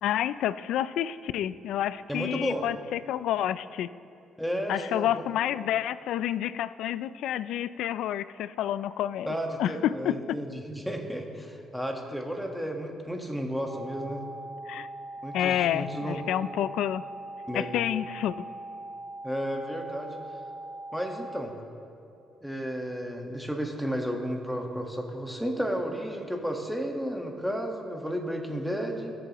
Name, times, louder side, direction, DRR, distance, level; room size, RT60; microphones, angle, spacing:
voice 1, 0.0-3.9 4.7-9.3 9.6-10.4 14.7-14.9 15.3-17.0 17.5-18.4, left 11 dB, 85° left, 16 dB, 0.3 m, -29 dB
voice 2, 2.1-2.6 4.4-5.2 9.3-14.2 15.2-16.2 17.5-17.7 19.2-20.1 20.9-21.5 22.4-29.1, equal, ahead, 2 dB, 1.4 m, -33 dB
sound 1, 13.7-21.4, right 2 dB, 45° right, 1.0 m, -41 dB
20.5 x 7.6 x 3.0 m, 2.5 s
cardioid pair, 90°, 0 cm